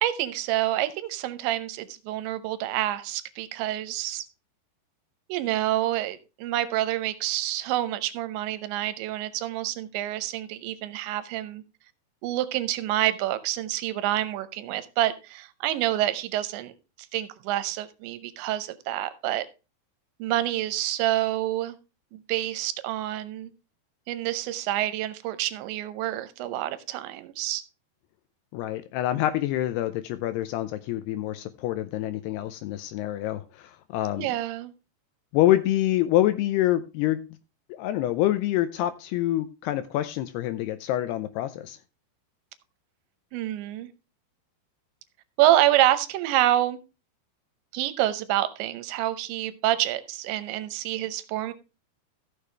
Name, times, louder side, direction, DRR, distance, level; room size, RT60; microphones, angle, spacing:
voice 1, 0.0-4.2 5.3-11.6 12.2-16.7 17.1-19.5 20.2-21.8 22.1-23.5 24.1-27.6 34.2-34.7 43.3-43.9 45.4-46.8 47.7-51.5, right 14 dB, 85° right, 3.1 m, -27 dB
voice 2, 28.5-34.3 35.3-37.2 37.7-41.8, left 14 dB, 80° left, 2.5 m, -26 dB
14.5 x 6.8 x 3.2 m
omnidirectional pair, 5.1 m